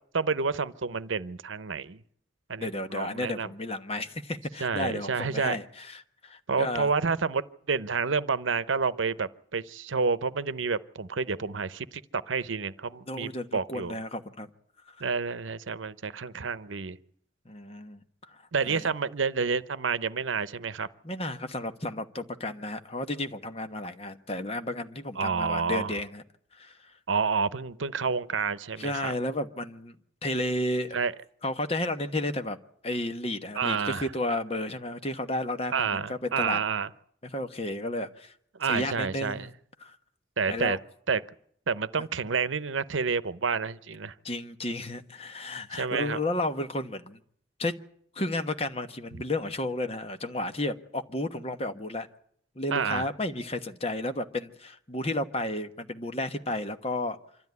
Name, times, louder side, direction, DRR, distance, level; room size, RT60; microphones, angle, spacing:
voice 1, 0.1-2.0 2.5-3.5 4.6-5.6 6.5-14.0 15.0-17.0 18.5-20.9 25.2-25.9 27.1-29.1 30.9-31.1 33.5-34.1 35.7-36.9 38.6-39.5 40.4-40.8 41.1-41.2 41.7-44.1 45.7-46.2 52.7-53.1, right 5 dB, 85° right, 0.8 m, -29 dB
voice 2, 2.6-6.9 13.1-14.5 17.4-18.4 18.7-18.8 21.0-26.2 26.5-26.8 28.3-28.4 28.8-29.9 30.2-31.0 31.4-32.6 32.8-36.6 37.3-38.3 38.7-39.5 39.8-40.0 40.5-40.8 44.2-47.2 47.6-47.7 48.1-52.1 52.6-57.2, left 1 dB, 30° left, 1.1 m, -32 dB
26.0 x 13.0 x 9.5 m
head